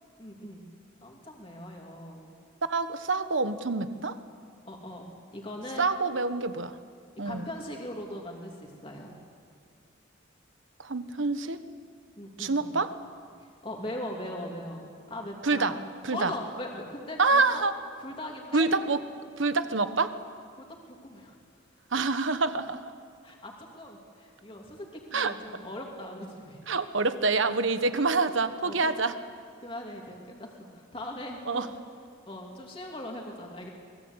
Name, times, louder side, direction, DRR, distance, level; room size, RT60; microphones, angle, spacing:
voice 1, 0.2-0.6 1.0-2.3 4.7-5.0 5.3-5.9 7.2-9.2 12.2-12.8 13.6-15.9 16.1-17.6 18.0-18.7 20.6-21.4 23.2-24.9 25.1-26.6 28.6-29.0 29.6-31.7 32.3-33.7, left 1 dB, 25° left, 0 dB, 2.7 m, -40 dB
voice 2, 2.6-4.1 5.8-6.7 7.2-7.5 10.8-11.6 12.4-12.9 15.4-15.8 16.0-16.3 17.2-17.7 18.5-19.0 19.4-20.2 21.9-22.8 25.1-25.3 26.7-29.1 31.5-31.7, right 3 dB, 75° right, 11 dB, 1.2 m, -26 dB
25.0 x 20.0 x 8.1 m, 2.1 s
head